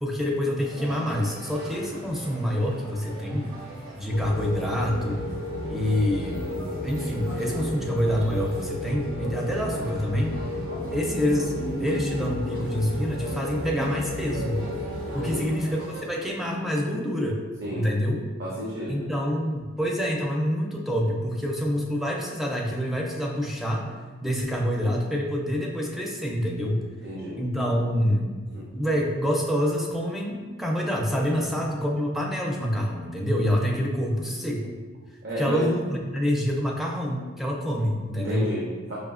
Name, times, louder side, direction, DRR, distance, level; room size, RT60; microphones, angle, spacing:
voice 1, 0.0-3.5 3.9-5.2 5.7-6.6 6.8-10.4 10.9-14.6 15.1-17.4 17.7-18.2 18.9-23.9 24.2-26.8 27.4-28.3 28.7-34.7 35.4-38.5, equal, ahead, -1 dB, 0.4 m, -26 dB
sound 1, 0.6-16.0, right 1 dB, 75° right, 0.9 m, -39 dB
sound 2, 4.1-15.4, left 2 dB, 70° left, 0.4 m, -33 dB
voice 2, 15.2-15.5 17.6-17.9 18.4-19.1 27.0-27.4 28.5-28.6 31.4-31.5 35.2-35.7 38.1-38.9, right 1 dB, 55° right, -6 dB, 0.6 m, -32 dB
4.9 x 2.6 x 2.4 m, 1.4 s
head